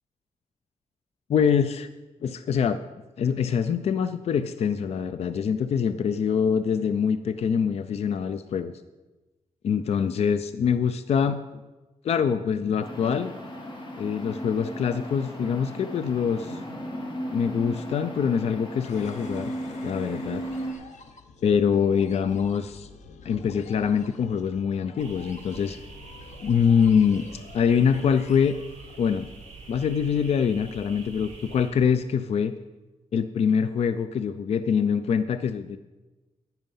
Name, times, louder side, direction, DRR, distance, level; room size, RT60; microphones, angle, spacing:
voice 1, 1.3-1.9 2.2-2.8 3.2-8.7 9.6-11.4 12.0-13.3 14.0-16.6 17.3-19.5 19.8-20.4 21.4-22.9 23.2-25.8 26.4-28.5 29.0-29.3 29.7-32.6 33.1-35.8, left 7 dB, 60° left, 11 dB, 0.5 m, -24 dB
sound 1, 12.8-20.7, equal, 40° left, 2.1 m, -36 dB
sound 2, 18.8-29.5, left 4 dB, 75° left, 0.9 m, -48 dB
sound 3, 25.0-31.7, right 3 dB, 70° right, 4.0 m, -45 dB
10.5 x 9.2 x 5.6 m, 1.1 s
wide cardioid pair, 165°, 12 cm